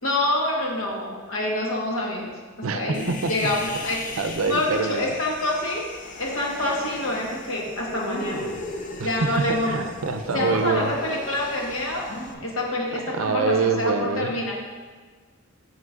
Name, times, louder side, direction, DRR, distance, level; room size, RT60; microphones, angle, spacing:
voice 1, 0.0-5.8 6.2-8.5 9.0-9.9 10.3-12.1 12.4-14.5, left 1 dB, 75° left, -2 dB, 1.3 m, -27 dB
Human voice, 2.9-12.3, left 2 dB, 40° left, 0.5 m, -37 dB
voice 2, 4.2-5.1 9.0-11.0 12.9-14.3, right 4 dB, 85° right, 8 dB, 0.5 m, -25 dB
sound 1, 8.0-8.6 9.3-9.4 10.3-10.8 12.1-12.6 13.1-13.2 13.5-13.6, left 1 dB, 55° left, 1.2 m, -36 dB
9.4 x 5.9 x 2.4 m, 1.4 s
head